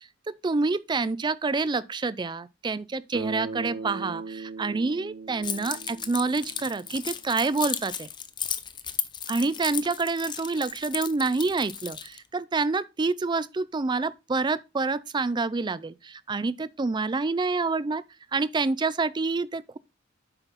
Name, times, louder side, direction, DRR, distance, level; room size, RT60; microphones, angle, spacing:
voice 1, 0.0-8.1 9.3-18.0 18.3-19.8, right 3 dB, 25° right, 0.4 m, -27 dB
Bass guitar, 3.1-7.1, right 4 dB, 75° right, 1.3 m, -39 dB
Keys jangling, 5.4-12.2, left 8 dB, 25° left, 0.6 m, -35 dB
8.0 x 5.7 x 4.0 m
head